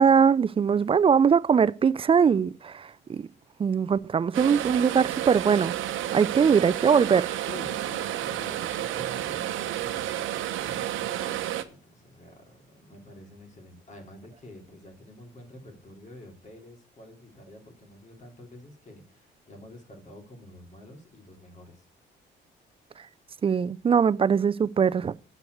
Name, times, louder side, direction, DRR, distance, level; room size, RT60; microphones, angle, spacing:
voice 1, 0.0-3.3 3.6-5.7 6.1-7.4 23.4-25.1, right 6 dB, 30° right, 0.4 m, -21 dB
sound 1, 4.3-11.6, right 12 dB, 85° right, 0.8 m, -31 dB
voice 2, 7.5-21.8, left 1 dB, 35° left, 3.2 m, -48 dB
7.9 x 5.9 x 7.9 m
cardioid pair, 90°, 20 cm